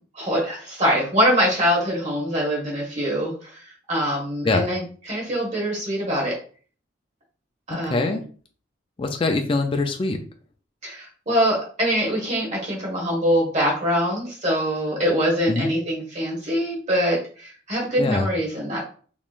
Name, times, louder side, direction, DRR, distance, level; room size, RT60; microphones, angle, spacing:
voice 1, 0.1-6.4 7.7-8.2 10.8-18.8, equal, 35° right, -3 dB, 1.4 m, -24 dB
voice 2, 7.7-8.2 9.0-10.2 15.5-15.7 18.0-18.3, left 3 dB, 25° left, 4 dB, 0.3 m, -23 dB
3.6 x 3.0 x 2.4 m, 0.41 s
head